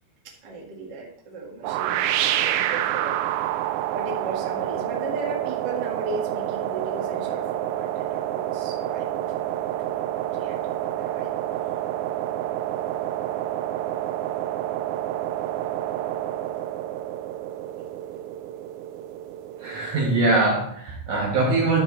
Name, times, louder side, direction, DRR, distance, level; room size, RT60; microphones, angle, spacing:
voice 1, 0.2-3.2 3.9-10.0 10.3-11.6 19.9-20.4, right 3 dB, 40° right, 1.6 m, -36 dB
sound 1, 1.6-20.5, right 12 dB, 85° right, 2.8 m, -28 dB
voice 2, 19.6-21.8, right 2 dB, 60° right, 2.3 m, -22 dB
12.0 x 5.0 x 4.1 m
omnidirectional pair, 4.9 m